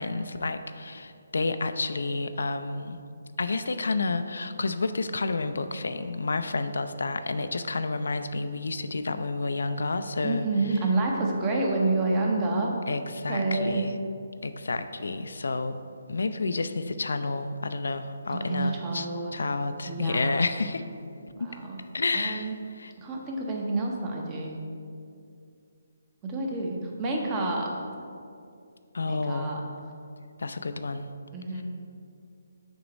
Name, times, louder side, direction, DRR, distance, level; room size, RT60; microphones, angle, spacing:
voice 1, 0.0-3.0 3.4-10.5 12.9-13.9 14.4-15.8 16.1-19.1 19.3-20.8 21.9-22.9 28.9-29.5 30.4-31.1 31.5-31.6, left 3 dB, 75° left, 10 dB, 0.3 m, -30 dB
voice 2, 10.2-12.7 13.3-13.8 18.3-19.3 19.9-20.5 21.4-21.8 22.1-22.6 23.0-24.5 26.2-27.7 29.1-29.6 31.3-31.6, right 2 dB, 20° right, 0 dB, 0.8 m, -28 dB
6.2 x 3.0 x 5.1 m, 2.4 s
hypercardioid pair, 155°, 0 cm